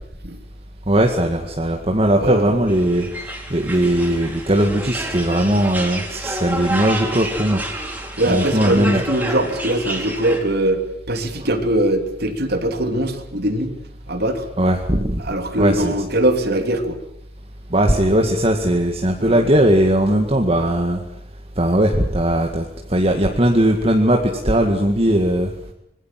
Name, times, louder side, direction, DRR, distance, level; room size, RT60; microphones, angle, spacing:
voice 1, 0.9-3.1 3.5-7.6 8.2-9.0 14.6-15.2 15.6-15.9 17.7-21.0 21.6-22.6 22.9-25.5, right 1 dB, 30° right, 3 dB, 2.1 m, -18 dB
voice 2, 2.2-2.5 8.2-10.8 11.1-13.7 14.1-14.4 15.2-17.0 19.2-19.5, right 1 dB, 55° right, 7 dB, 3.1 m, -21 dB
sound 1, 2.7-10.4, right 1 dB, 10° right, 4.3 m, -29 dB
25.5 x 22.0 x 7.7 m, 0.77 s
head